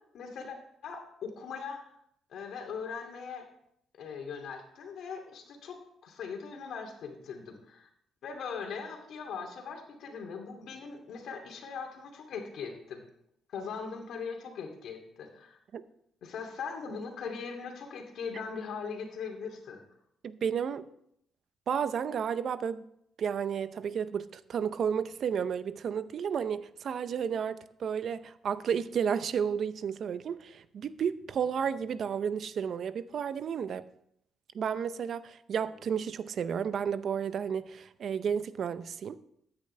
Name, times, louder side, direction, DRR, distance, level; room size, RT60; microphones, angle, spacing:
voice 1, 0.1-0.6 0.8-1.9 2.3-3.4 4.0-7.9 8.2-13.0 13.5-15.6 16.2-19.8, left 5 dB, 70° left, 2.5 m, -40 dB
voice 2, 20.2-20.8 21.7-22.8 23.2-33.8 34.5-39.2, right 7 dB, 60° right, 0.6 m, -32 dB
14.5 x 9.7 x 3.3 m
cardioid pair, 90°, 0 cm